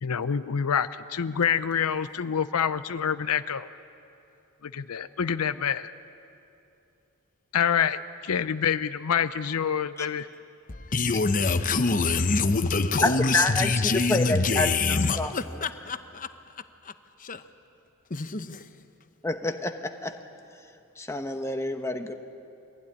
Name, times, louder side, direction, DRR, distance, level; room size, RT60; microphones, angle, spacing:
voice 1, 0.0-3.7 4.6-5.9 7.5-10.3, left 7 dB, 80° left, 0.6 m, -27 dB
voice 2, 10.7-16.5 16.8-16.9 17.2-17.4 18.1-18.7, left 4 dB, 35° left, 0.9 m, -25 dB
voice 3, 13.0-15.3 19.2-20.2 21.0-22.1, left 2 dB, 10° left, 1.1 m, -28 dB
23.5 x 16.0 x 10.0 m
head